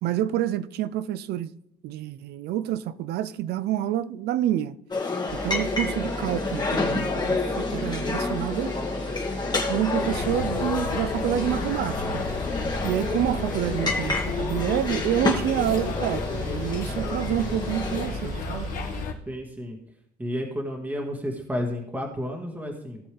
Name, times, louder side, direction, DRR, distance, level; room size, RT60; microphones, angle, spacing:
voice 1, 0.0-1.5 1.8-4.8 5.4-8.7 9.7-12.2 12.8-18.7, right 12 dB, 75° right, 0.6 m, -28 dB
sound 1, 4.9-18.1, left 3 dB, 25° left, 1.8 m, -29 dB
Boat Water vehicle, 5.3-19.0, right 1 dB, 45° right, 2.0 m, -37 dB
sound 2, 10.0-19.1, left 4 dB, 55° left, 1.7 m, -33 dB
voice 2, 19.2-19.8 20.2-23.0, equal, 10° right, 1.7 m, -31 dB
16.0 x 6.9 x 3.4 m
cardioid pair, 110°, 17 cm